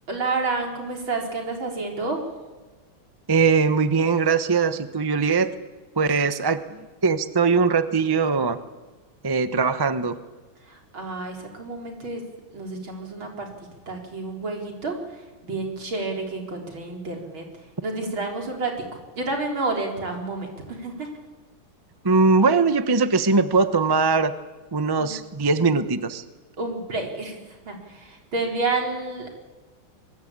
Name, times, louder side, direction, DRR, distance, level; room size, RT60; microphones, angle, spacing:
voice 1, 0.1-2.2 10.7-12.2 12.5-15.0 15.4-17.5 17.8-21.1 25.0-25.1 26.6-29.4, right 3 dB, 65° right, 2 dB, 4.9 m, -30 dB
voice 2, 3.3-5.5 6.0-8.6 9.2-10.2 22.0-24.3 24.7-26.2, right 4 dB, 30° right, 11 dB, 0.4 m, -21 dB
23.5 x 22.0 x 8.9 m, 1.3 s
omnidirectional pair, 2.4 m